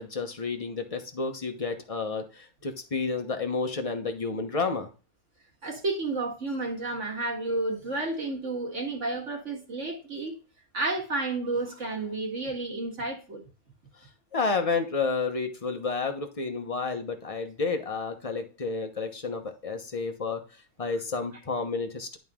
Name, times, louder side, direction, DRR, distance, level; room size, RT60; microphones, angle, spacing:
voice 1, 0.0-4.9 14.3-20.4 20.8-22.2, left 4 dB, 30° left, 0.7 m, -30 dB
voice 2, 5.6-10.4 10.7-13.4, right 2 dB, 45° right, 2.0 m, -31 dB
11.0 x 4.0 x 3.6 m
omnidirectional pair, 1.8 m